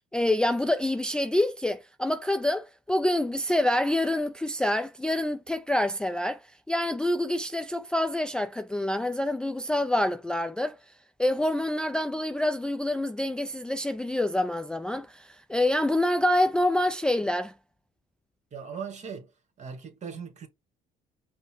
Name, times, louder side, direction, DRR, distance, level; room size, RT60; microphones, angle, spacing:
voice 1, 0.1-6.4 6.7-10.8 11.2-17.5, left 1 dB, 5° left, 0.4 m, -26 dB
voice 2, 18.5-19.3 19.6-20.5, right 6 dB, 45° right, 1.6 m, -39 dB
5.3 x 2.2 x 4.4 m
cardioid pair, 110°, 17 cm